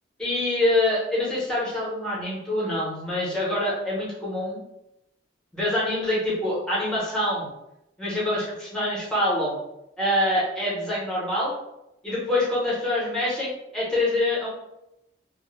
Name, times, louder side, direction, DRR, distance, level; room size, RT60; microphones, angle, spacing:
voice 1, 0.2-4.6 5.5-7.5 8.0-9.6 10.0-11.5 12.0-14.5, left 1 dB, 5° left, -7 dB, 0.8 m, -25 dB
2.2 x 2.1 x 3.1 m, 0.87 s
head